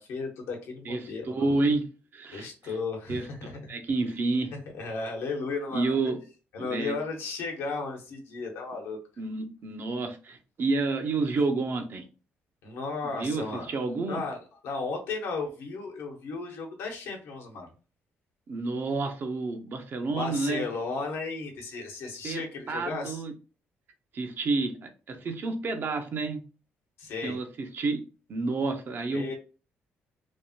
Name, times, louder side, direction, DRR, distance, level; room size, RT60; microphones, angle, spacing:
voice 1, 0.0-1.5 2.3-3.7 4.7-6.0 6.5-9.0 12.6-13.7 14.1-14.4 14.6-17.7 20.1-23.2 27.0-27.4 29.1-29.3, left 4 dB, 80° left, 1.0 m, -34 dB
voice 2, 0.8-1.8 2.1-2.8 3.1-4.5 5.7-6.2 6.6-6.9 9.2-12.1 13.0-14.2 18.5-20.6 22.2-23.3 24.1-26.4 27.2-28.0 28.3-29.3, right 3 dB, 50° right, 0.6 m, -30 dB
3.2 x 2.1 x 2.7 m
cardioid pair, 85°, 5 cm